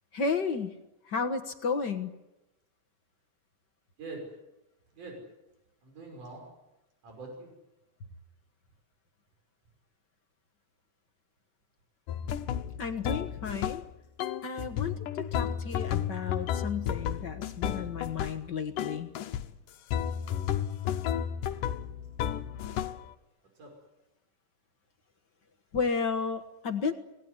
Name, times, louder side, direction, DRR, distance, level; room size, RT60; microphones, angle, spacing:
voice 1, 0.1-0.8 1.0-2.1 12.8-13.8 14.4-19.1 25.7-26.9, left 5 dB, 45° left, 7 dB, 1.5 m, -32 dB
voice 2, 4.0-4.3 5.0-5.2 5.8-6.5 7.0-7.5 22.7-23.0 23.6-23.7, right 3 dB, 75° right, 1 dB, 7.4 m, -44 dB
sound 1, 12.1-13.9 14.2-18.5 18.8-19.5 19.9-23.1, left 9 dB, 85° left, 2.7 m, -32 dB
26.0 x 19.0 x 9.8 m, 0.94 s
omnidirectional pair, 3.7 m